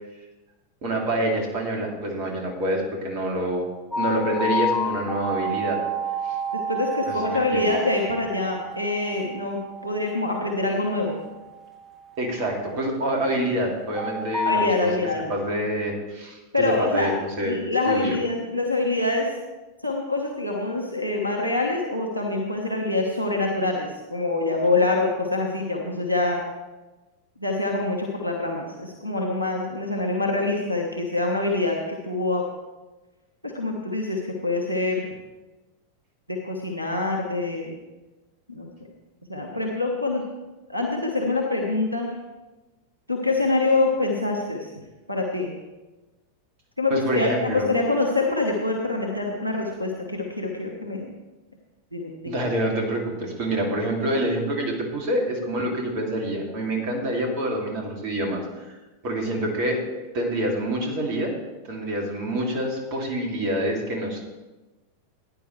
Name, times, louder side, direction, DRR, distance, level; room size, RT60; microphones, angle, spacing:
voice 1, 0.8-3.7 4.0-5.8 6.2-6.4 7.1-7.8 12.2-14.9 15.3-17.6 17.9-18.2 46.9-47.7 52.2-58.8 59.0-59.8 60.1-61.3 61.7-64.2, right 1 dB, 45° right, 0 dB, 2.7 m, -27 dB
sound 1, 3.9-13.0 14.0-14.7, equal, 5° left, 2.4 m, -30 dB
voice 2, 6.5-11.2 14.4-15.3 16.5-17.1 17.4-19.3 19.8-26.4 27.4-32.4 33.4-35.0 36.3-37.8 38.5-38.7 39.3-40.2 40.7-42.1 43.1-44.7 45.1-45.5 46.8-51.1 51.9-52.4, left 2 dB, 90° right, 1 dB, 1.3 m, -25 dB
16.0 x 10.0 x 3.3 m, 1.1 s
figure-of-eight pair, 90°, 0 cm